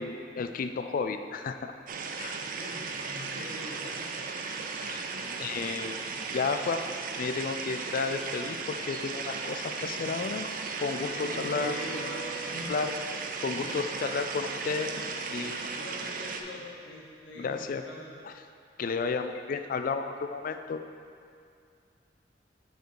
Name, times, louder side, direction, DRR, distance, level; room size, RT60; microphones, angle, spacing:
voice 1, 0.0-1.7 2.2-2.4 4.8-6.0 6.3-6.8 7.2-10.5 10.8-11.8 12.7-12.9 13.4-14.9 15.3-15.6 17.4-17.8 18.8-20.8, left 4 dB, 50° left, 8 dB, 0.3 m, -32 dB
sound 1, 1.9-16.4, right 4 dB, 50° right, 0.4 m, -36 dB
voice 2, 2.6-4.2 5.1-5.7 11.0-13.0 13.5-13.8 15.7-18.2, left 1 dB, 75° left, -4 dB, 1.1 m, -43 dB
Bowed string instrument, 10.6-16.8, right 2 dB, 70° right, 0.9 m, -45 dB
6.4 x 5.1 x 4.6 m, 2.4 s
head